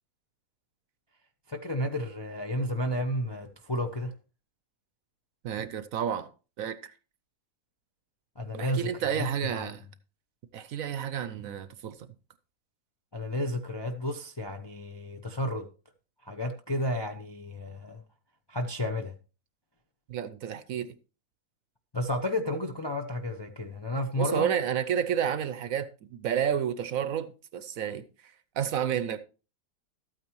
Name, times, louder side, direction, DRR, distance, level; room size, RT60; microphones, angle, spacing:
voice 1, 1.5-4.1 8.4-9.7 13.1-15.7 16.2-18.0 18.5-19.2 21.9-24.5, left 1 dB, 30° left, 0.4 m, -32 dB
voice 2, 5.4-6.3 6.6-6.9 8.5-9.9 10.5-12.0 20.1-20.9 24.2-28.0 28.6-29.2, right 9 dB, 65° right, 1.0 m, -30 dB
13.0 x 8.9 x 3.0 m
omnidirectional pair, 1.7 m